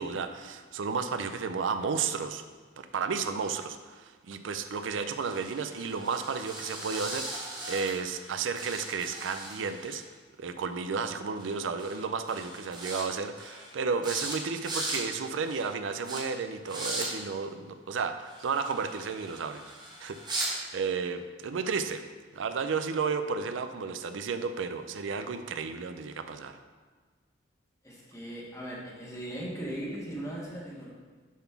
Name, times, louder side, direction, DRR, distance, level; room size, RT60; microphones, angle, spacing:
voice 1, 0.0-2.4 2.8-10.0 10.4-19.7 20.0-22.0 22.3-26.6, right 5 dB, 85° right, 9 dB, 0.4 m, -33 dB
sound 1, 5.2-8.3 8.5-10.0 11.4-11.5 11.8-12.0 12.3-13.0 13.4-13.7 14.0-14.4 14.6-15.0 15.4-15.7 16.0-16.2 16.6-17.1 18.3-20.5, right 2 dB, 25° right, 1.3 m, -38 dB
voice 2, 27.8-30.9, right 1 dB, 15° left, -4 dB, 1.4 m, -38 dB
7.0 x 4.0 x 5.8 m, 1.4 s
head